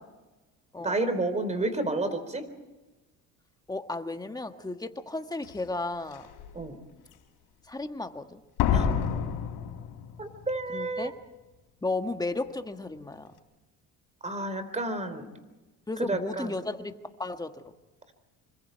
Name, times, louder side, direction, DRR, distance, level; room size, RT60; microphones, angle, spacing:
voice 1, 0.8-2.5 6.5-6.8 8.7-8.9 10.2-11.1 14.2-15.3 16.1-16.5, right 2 dB, 20° right, 10 dB, 3.9 m, -30 dB
voice 2, 3.7-6.3 7.7-8.4 10.7-11.1 11.8-13.3 15.9-16.9 17.2-17.5, left 2 dB, 10° left, 7 dB, 1.6 m, -34 dB
Slam, 5.4-5.5 6.1-6.5 8.6-10.5 10.7-10.8, left 8 dB, 85° left, 4.1 m, -28 dB
26.5 x 25.0 x 4.6 m, 1.1 s
cardioid pair, 115°, 33 cm